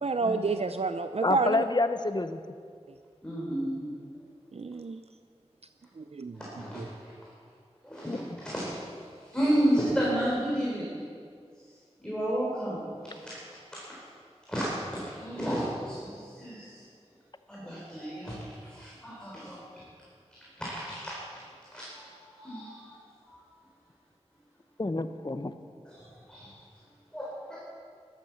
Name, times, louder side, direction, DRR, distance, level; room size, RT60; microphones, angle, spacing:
voice 1, 0.0-1.6 4.5-5.0 6.0-6.4 6.7-6.9, right 3 dB, 65° right, 9 dB, 0.5 m, -29 dB
voice 2, 1.2-2.4 8.1-8.4 24.8-25.5, left 2 dB, 40° left, 10 dB, 0.8 m, -28 dB
voice 3, 3.2-3.9 6.6-6.8 7.9-8.1 8.4-8.7 9.3-10.9 12.0-12.8 14.5-16.0 16.4-16.6 17.5-18.3 18.8-19.6 21.7-21.8 22.4-22.7 26.3-26.4 27.1-27.6, right 1 dB, 5° left, -6 dB, 4.0 m, -30 dB
12.5 x 12.0 x 7.0 m, 2.1 s
wide cardioid pair, 50°, 12 cm